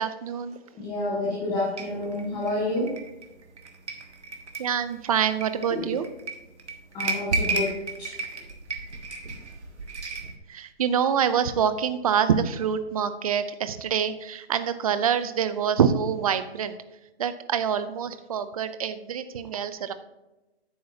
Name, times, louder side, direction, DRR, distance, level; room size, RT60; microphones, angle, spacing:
voice 1, 0.0-0.6 4.6-6.1 10.5-16.8 17.2-19.9, right 8 dB, 35° right, 12 dB, 0.6 m, -26 dB
voice 2, 0.8-2.9 5.7-6.0 6.9-8.2, left 2 dB, 10° left, -6 dB, 1.7 m, -29 dB
sound 1, 1.8-10.4, right 3 dB, 90° right, 1.7 m, -33 dB
10.5 x 8.5 x 2.8 m, 1.0 s
hypercardioid pair, 150°, 33 cm